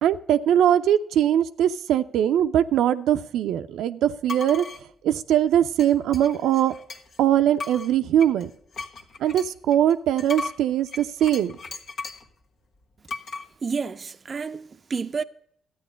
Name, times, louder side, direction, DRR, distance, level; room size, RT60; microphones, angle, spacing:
voice 1, 0.0-4.7 5.0-6.7 7.2-8.5 9.2-11.6, right 10 dB, 80° right, 0.5 m, -21 dB
sound 1, 4.3-4.8 5.8-7.2 7.6-12.3 13.1-13.5, left 3 dB, 60° left, 1.3 m, -36 dB
voice 2, 13.6-15.2, right 5 dB, 35° right, 0.5 m, -30 dB
13.0 x 9.1 x 5.1 m
cardioid pair, 90°, 0 cm